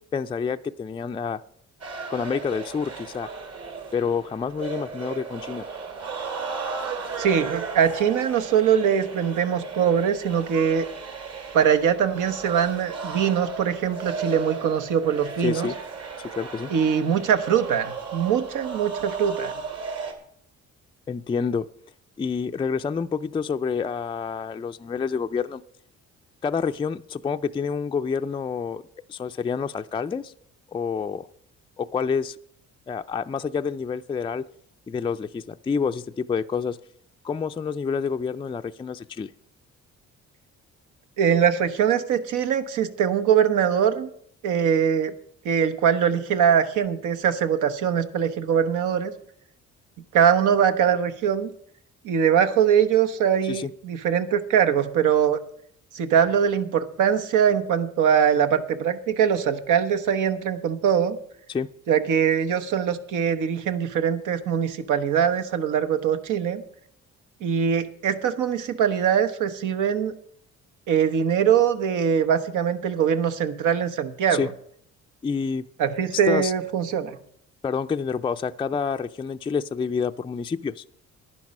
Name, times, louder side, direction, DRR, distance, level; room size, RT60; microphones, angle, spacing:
voice 1, 0.1-1.4 2.1-3.3 3.9-5.7 15.4-15.8 16.3-16.7 21.1-21.7 22.2-25.6 26.4-28.8 29.1-30.3 30.7-31.3 31.8-32.4 32.9-34.5 34.9-36.8 37.2-39.3 53.4-53.7 61.5-61.7 74.3-74.5 75.2-75.6 76.3-76.5 77.6-80.8, left 6 dB, 20° left, 8 dB, 0.3 m, -28 dB
sound 1, 1.8-20.1, right 5 dB, 55° right, 2.4 m, -35 dB
voice 2, 7.2-10.9 11.5-15.7 16.7-19.5 41.2-44.1 44.4-45.1 45.4-49.1 50.1-51.5 52.0-55.4 55.9-61.2 61.9-66.6 67.4-70.1 70.9-74.5 75.8-77.2, right 8 dB, 85° right, 8 dB, 1.0 m, -22 dB
11.0 x 10.0 x 5.3 m, 0.67 s
cardioid pair, 90°, 30 cm